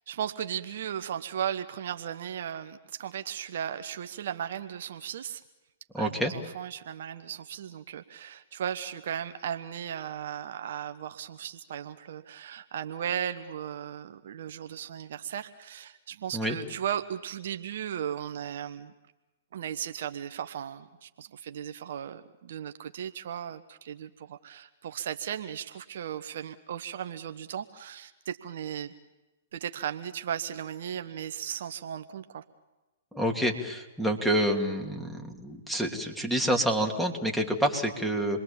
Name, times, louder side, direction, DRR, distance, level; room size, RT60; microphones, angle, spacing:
voice 1, 0.1-5.4 6.0-18.9 19.5-28.9 29.5-32.4, right 9 dB, 65° right, 9 dB, 1.0 m, -36 dB
voice 2, 5.9-6.3 16.3-16.6 33.1-38.4, right 1 dB, ahead, 2 dB, 2.9 m, -28 dB
28.0 x 21.5 x 7.2 m, 1.1 s
hypercardioid pair, 120°, 0 cm